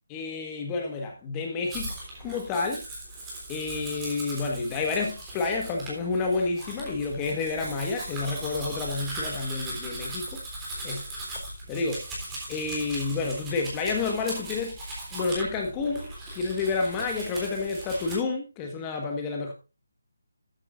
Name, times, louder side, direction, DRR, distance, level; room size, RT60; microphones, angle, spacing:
voice 1, 0.1-2.8 3.5-10.4 10.8-11.1 11.7-12.1 12.5-14.8 15.1-16.1 16.3-19.5, left 4 dB, 15° left, 2 dB, 1.4 m, -30 dB
Domestic sounds home sounds, 1.7-18.2, right 1 dB, 10° right, 3.4 m, -38 dB
13.0 x 9.2 x 2.6 m, 0.29 s
figure-of-eight pair, 170°, 0 cm